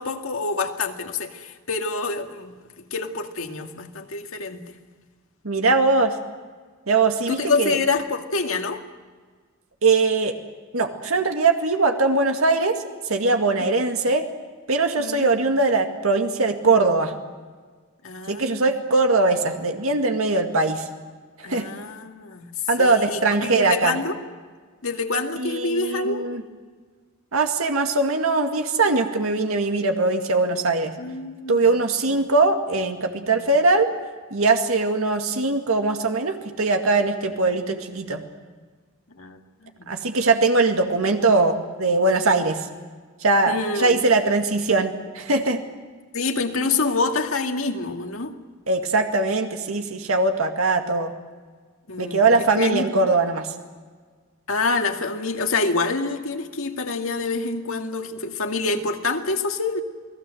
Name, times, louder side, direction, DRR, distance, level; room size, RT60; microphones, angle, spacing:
voice 1, 0.0-2.5 2.9-4.6 7.3-8.8 15.0-15.3 18.0-18.7 21.4-22.5 22.8-24.2 24.8-26.2 31.0-31.6 39.2-39.4 39.8-39.9 43.5-44.1 46.1-48.3 51.9-52.8 54.5-59.8, left 3 dB, 70° left, 4 dB, 2.2 m, -26 dB
voice 2, 5.4-6.2 6.9-7.8 9.8-10.3 10.7-14.2 14.7-17.1 18.3-20.9 21.5-21.7 22.7-24.0 25.4-26.4 27.3-30.9 31.5-33.9 34.3-38.2 39.9-42.7 43.2-45.6 48.7-51.1 52.0-53.5, right 3 dB, 85° right, 4 dB, 2.1 m, -21 dB
29.0 x 19.5 x 7.8 m, 1.5 s
head